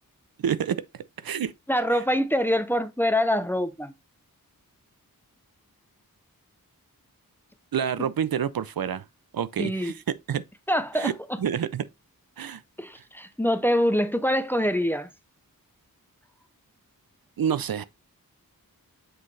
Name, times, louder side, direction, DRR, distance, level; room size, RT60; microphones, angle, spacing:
voice 1, 0.4-1.5 7.7-9.0 9.3-10.0 10.3-10.4 10.9-11.1 11.4-11.8 12.4-12.6 13.0-13.1 17.4-17.8, right 8 dB, 75° right, 0.6 m, -28 dB
voice 2, 1.7-3.9 9.6-9.9 10.7-11.1 12.8-15.1, equal, 5° left, 0.6 m, -24 dB
7.7 x 3.8 x 3.2 m
wide cardioid pair, 90°, 36 cm